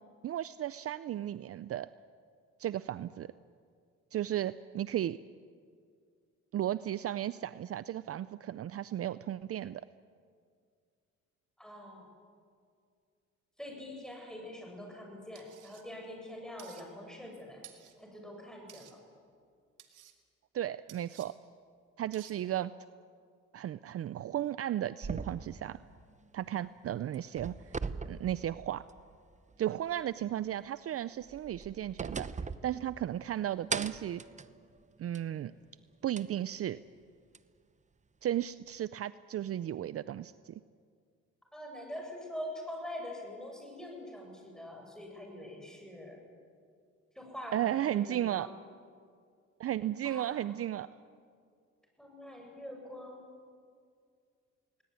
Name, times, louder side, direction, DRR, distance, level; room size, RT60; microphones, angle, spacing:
voice 1, 0.2-1.9 2.6-3.3 4.1-5.2 6.5-9.8 20.5-21.3 22.0-22.7 23.5-25.8 26.3-27.8 28.0-28.8 29.6-32.3 32.6-34.2 35.0-35.5 36.0-36.8 38.2-40.6 47.5-48.5 49.6-50.9, right 12 dB, 50° right, 16 dB, 0.5 m, -34 dB
voice 2, 11.6-12.0 13.6-17.6 18.0-19.0 41.5-46.2 47.2-48.5 50.0-50.3 52.0-53.2, left 1 dB, ahead, 1 dB, 7.5 m, -44 dB
sound 1, 15.4-15.8 16.6-16.8 17.6-18.0 18.7-18.9 19.8-20.1 20.9-21.3 22.1-22.4, right 12 dB, 85° right, 2.1 m, -54 dB
sound 2, 25.0-26.8 27.1-29.2 29.5-29.6 31.2-33.3 33.7-35.4 36.2-36.3 37.3-37.4, right 4 dB, 25° right, 0.9 m, -40 dB
20.0 x 19.5 x 9.6 m, 2.2 s
cardioid pair, 90°, 30 cm